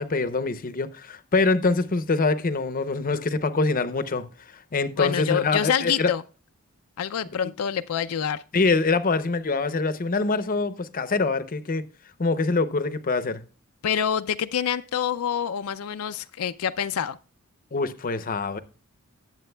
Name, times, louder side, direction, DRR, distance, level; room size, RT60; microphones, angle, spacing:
voice 1, 0.0-6.1 8.5-11.9 12.2-13.4 17.7-18.6, left 3 dB, 40° left, 0.6 m, -24 dB
voice 2, 5.0-6.2 7.0-8.4 13.8-17.2, left 8 dB, 80° left, 0.4 m, -26 dB
18.5 x 7.5 x 2.2 m
head